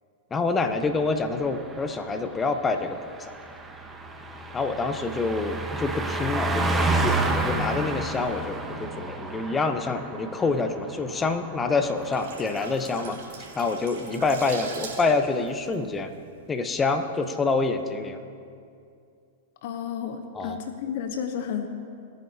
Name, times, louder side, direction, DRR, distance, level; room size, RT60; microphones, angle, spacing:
voice 1, 0.3-3.0 4.5-13.2 13.6-16.1 16.5-18.2 20.3-20.6, left 3 dB, 20° left, 8 dB, 0.9 m, -27 dB
Car passing by, 0.7-12.7 13.0-13.2, right 2 dB, 15° right, 1.1 m, -31 dB
sound 1, 11.8-16.7 17.0-17.2, right 4 dB, 65° right, 3.1 m, -40 dB
voice 2, 19.6-21.7, left 8 dB, 60° left, 6 dB, 0.9 m, -32 dB
20.0 x 9.4 x 2.8 m, 2.4 s
hypercardioid pair, 105°, 0 cm